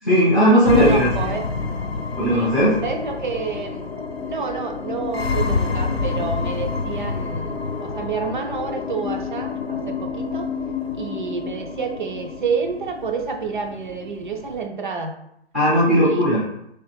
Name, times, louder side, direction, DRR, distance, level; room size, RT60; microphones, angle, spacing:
voice 1, 0.0-1.1 2.2-2.7 15.5-16.4, equal, ahead, -13 dB, 0.5 m, -16 dB
voice 2, 0.5-1.5 2.3-2.5 2.8-3.8 4.3-10.5 10.9-15.2 16.0-16.2, right 5 dB, 50° right, 4 dB, 0.5 m, -29 dB
sound 1, 0.7-14.7, left 4 dB, 70° left, 0.7 m, -28 dB
3.3 x 2.8 x 4.6 m, 0.77 s
figure-of-eight pair, 135°, 32 cm